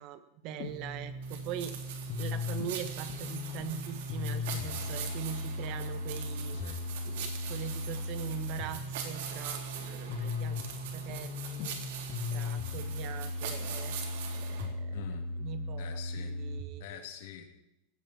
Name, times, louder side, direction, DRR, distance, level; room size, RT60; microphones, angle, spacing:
voice 1, 0.0-1.8 2.2-6.6 7.0-11.7 12.3-14.0 14.3-15.0 15.4-17.0, right 9 dB, 40° right, 12 dB, 1.4 m, -42 dB
sound 1, 0.6-16.6, left 3 dB, 50° left, 2.7 m, -37 dB
sound 2, 1.2-14.7, right 7 dB, 65° right, 3.7 m, -43 dB
voice 2, 6.5-6.9 14.9-15.3 15.8-16.4 16.8-17.5, left 10 dB, 65° left, 5 dB, 3.0 m, -45 dB
17.5 x 16.0 x 4.5 m, 0.87 s
supercardioid pair, 165°, 0 cm